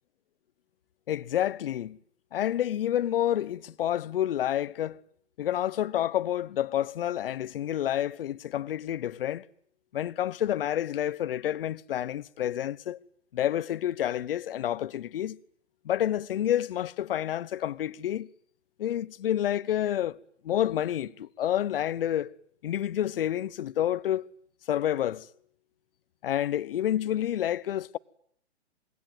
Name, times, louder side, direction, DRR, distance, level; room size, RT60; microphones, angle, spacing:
voice 1, 1.1-2.0 2.3-5.0 5.4-9.4 9.9-13.0 13.3-15.4 15.8-18.3 18.8-20.2 20.4-22.3 22.6-24.3 24.7-25.3 26.2-28.0, left 11 dB, 55° left, 1.2 m, -29 dB
26.5 x 22.5 x 9.5 m
hypercardioid pair, 140°, 33 cm